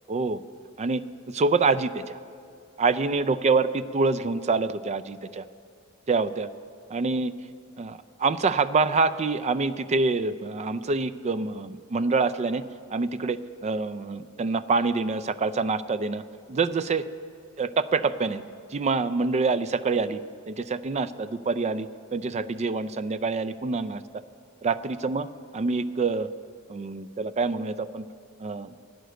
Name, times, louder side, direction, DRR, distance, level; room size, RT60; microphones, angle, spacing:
voice 1, 0.1-0.4 0.8-2.2 2.8-5.4 6.1-6.5 6.9-7.3 7.8-12.6 12.9-16.2 16.5-17.0 17.6-20.2 20.5-24.0 24.6-25.3 25.5-26.3 26.7-28.0 28.4-28.7, right 4 dB, 30° right, 14 dB, 0.4 m, -26 dB
11.5 x 9.2 x 7.8 m, 2.4 s
head